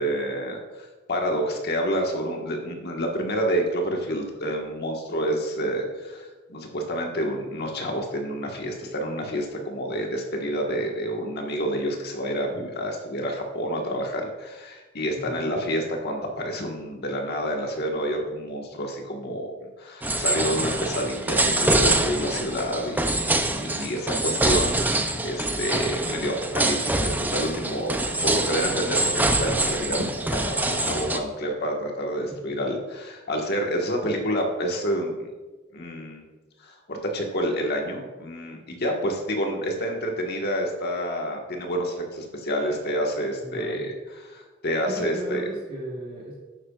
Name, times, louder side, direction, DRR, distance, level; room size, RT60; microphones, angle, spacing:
voice 1, 0.0-35.3 35.7-36.2 36.6-45.4, equal, 55° left, 1 dB, 1.5 m, -29 dB
voice 2, 15.1-15.4 32.3-32.6 43.4-43.9 44.9-46.3, right 1 dB, 45° right, -5 dB, 1.5 m, -36 dB
sound 1, 20.0-31.2, right 2 dB, 10° right, 0.5 m, -25 dB
11.0 x 8.6 x 2.4 m, 1.2 s
head